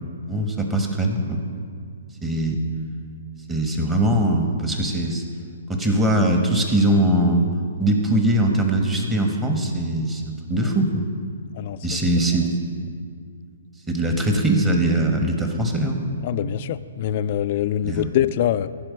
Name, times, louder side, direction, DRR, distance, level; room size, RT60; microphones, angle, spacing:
voice 1, 0.3-1.4 2.2-2.6 3.5-5.2 5.7-7.4 7.8-11.1 11.8-12.5 13.9-16.0 17.8-18.1, right 1 dB, 15° right, 2 dB, 1.3 m, -21 dB
voice 2, 11.6-12.0 16.2-18.7, left 11 dB, 45° left, 13 dB, 0.3 m, -24 dB
15.0 x 5.0 x 6.4 m, 2.2 s
hypercardioid pair, 130°, 0 cm